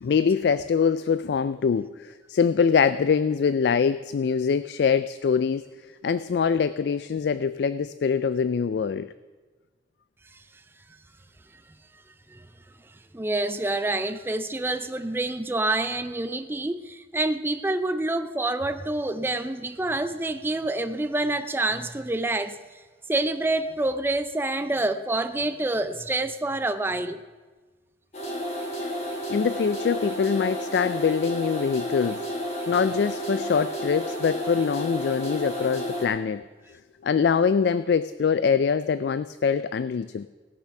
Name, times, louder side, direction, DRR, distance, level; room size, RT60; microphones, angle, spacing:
voice 1, 0.0-5.6 6.0-9.1 29.3-32.2 32.7-36.4 37.0-40.3, left 6 dB, 65° left, 0.3 m, -24 dB
voice 2, 13.1-22.6 23.1-27.2, right 2 dB, 15° right, 0.4 m, -27 dB
sound 1, 28.1-36.1, equal, 40° left, 2.4 m, -31 dB
18.0 x 6.9 x 5.9 m
head